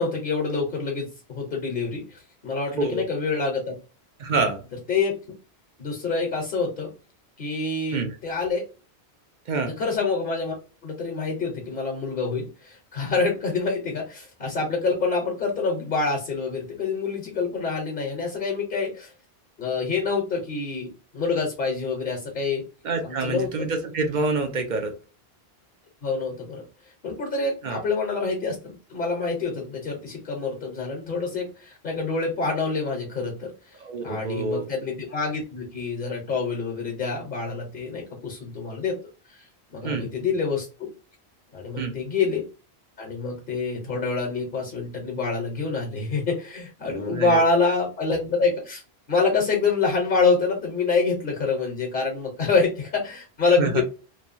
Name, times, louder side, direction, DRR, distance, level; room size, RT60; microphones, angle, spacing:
voice 1, 0.0-3.7 4.9-5.1 5.8-6.9 7.4-8.7 9.8-10.6 10.8-19.1 19.6-22.6 23.0-23.7 26.0-26.6 27.0-33.7 34.0-39.0 39.3-39.5 39.7-40.9 41.5-42.5 43.0-48.8 49.1-53.8, left 4 dB, 55° left, 0 dB, 1.0 m, -26 dB
voice 2, 4.2-4.7 7.9-8.1 9.5-9.7 22.8-25.0 27.6-27.8 33.8-34.7 39.8-40.1 41.8-42.0 47.1-47.7 53.6-53.8, right 3 dB, 55° right, 5 dB, 0.7 m, -27 dB
3.0 x 2.2 x 2.6 m, 0.34 s
omnidirectional pair, 1.1 m